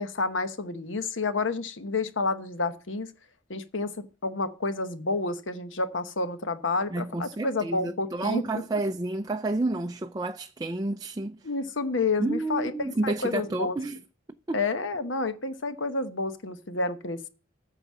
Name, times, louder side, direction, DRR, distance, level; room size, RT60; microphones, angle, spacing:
voice 1, 0.0-3.1 3.5-8.6 11.4-12.7 13.0-13.8 14.5-17.3, left 3 dB, 70° left, 1.0 m, -29 dB
voice 2, 6.9-11.5 12.2-14.0 14.5-14.6, right 2 dB, 20° right, 0.4 m, -30 dB
9.1 x 5.8 x 7.3 m
head